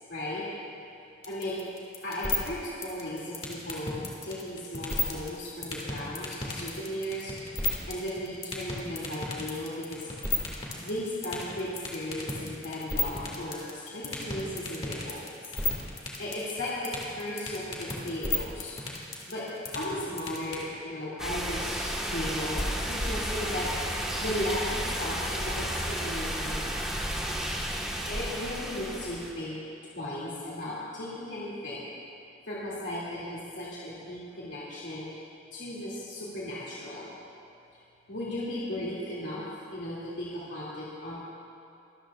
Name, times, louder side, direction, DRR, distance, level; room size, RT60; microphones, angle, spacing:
voice 1, 0.1-0.4 1.3-1.6 2.0-3.9 4.2-10.1 10.8-15.2 16.2-18.8 19.3-19.5 19.7-26.9 28.1-29.6 29.9-31.9 32.5-37.1 38.1-39.4 39.7-41.2, left 1 dB, 75° left, -8 dB, 2.5 m, -36 dB
sound 1, 1.2-20.6, left 2 dB, 30° left, 2.1 m, -31 dB
sound 2, 21.2-29.3, equal, 5° right, 1.4 m, -32 dB
24.0 x 13.5 x 2.4 m, 2.6 s
head